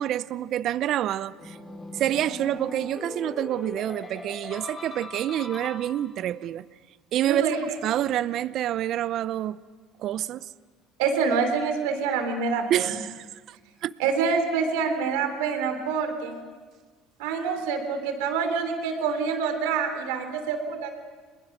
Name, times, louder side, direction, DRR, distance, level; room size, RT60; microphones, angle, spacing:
voice 1, 0.0-1.6 1.9-6.7 7.1-7.4 7.8-9.6 10.0-10.5 12.7-13.6 13.8-13.9, right 12 dB, 60° right, 0.6 m, -27 dB
sound 1, 1.4-6.3, left 2 dB, 30° left, 5.2 m, -40 dB
voice 2, 11.0-12.8 14.0-16.4 17.2-20.9, right 5 dB, 85° right, 3.2 m, -26 dB
29.5 x 21.5 x 6.0 m
supercardioid pair, 80°, 0 cm